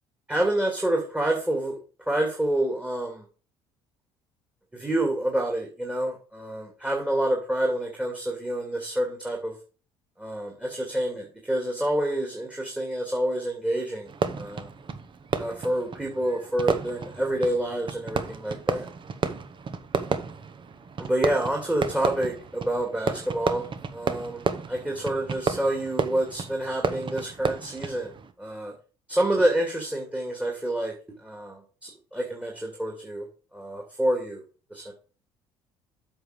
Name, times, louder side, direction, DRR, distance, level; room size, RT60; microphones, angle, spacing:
voice 1, 0.3-1.8 2.1-3.2 4.7-9.5 10.2-14.1 14.4-14.7 15.4-18.9 21.0-24.4 24.7-28.1 28.4-28.7 29.1-30.9 31.2-33.2 33.5-34.4 34.7-34.9, right 1 dB, 10° right, 1 dB, 2.5 m, -28 dB
Fireworks, 14.1-28.3, right 5 dB, 40° right, 1.1 m, -32 dB
8.0 x 5.5 x 5.1 m, 0.37 s
hypercardioid pair, 60°, 13 cm